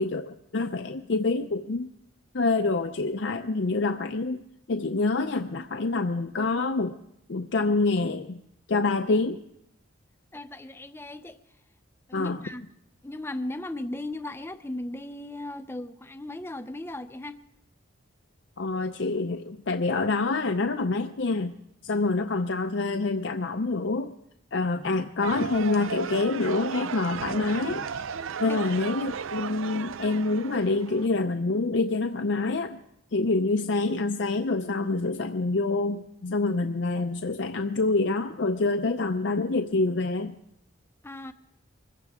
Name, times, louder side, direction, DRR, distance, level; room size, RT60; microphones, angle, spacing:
voice 1, 0.0-1.9 2.3-4.4 4.7-6.9 7.3-8.4 8.7-9.4 12.1-12.4 18.6-21.6 21.8-24.1 24.5-27.8 28.4-32.8 33.1-40.3, left 3 dB, 60° left, 6 dB, 0.6 m, -26 dB
voice 2, 10.3-11.4 12.1-12.6 13.0-17.4 27.6-27.8 28.5-28.8 41.0-41.3, left 1 dB, 10° left, 10 dB, 0.5 m, -37 dB
sound 1, 25.2-31.1, right 6 dB, 80° right, 0.5 m, -35 dB
24.5 x 15.0 x 3.6 m, 0.79 s
head